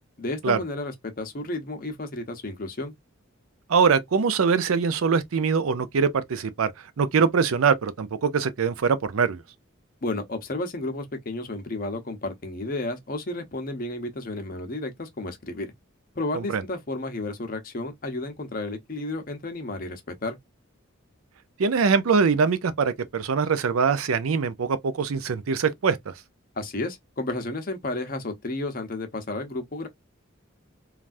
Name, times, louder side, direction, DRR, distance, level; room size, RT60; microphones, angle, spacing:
voice 1, 0.2-2.9 10.0-15.7 16.1-20.4 26.6-29.9, left 2 dB, 45° left, 0.7 m, -32 dB
voice 2, 3.7-6.7 7.0-9.4 16.3-16.6 21.6-26.1, right 5 dB, 90° right, 0.5 m, -23 dB
3.2 x 2.3 x 2.5 m
head